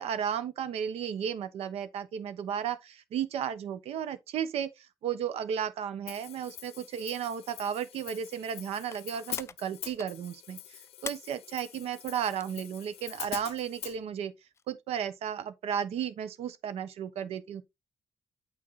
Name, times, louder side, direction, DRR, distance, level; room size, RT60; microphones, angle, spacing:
voice 1, 0.0-14.3 14.7-17.6, right 8 dB, 85° right, 0.9 m, -34 dB
Hi-hat, 6.1-14.0, left 12 dB, 75° left, 0.5 m, -44 dB
sound 1, 8.9-10.3 10.5-10.6 10.9-11.2 11.7-12.0 12.3-12.6 14.5-14.6, left 5 dB, 25° left, 0.4 m, -43 dB
8.7 x 4.5 x 4.0 m
cardioid pair, 145°, 10 cm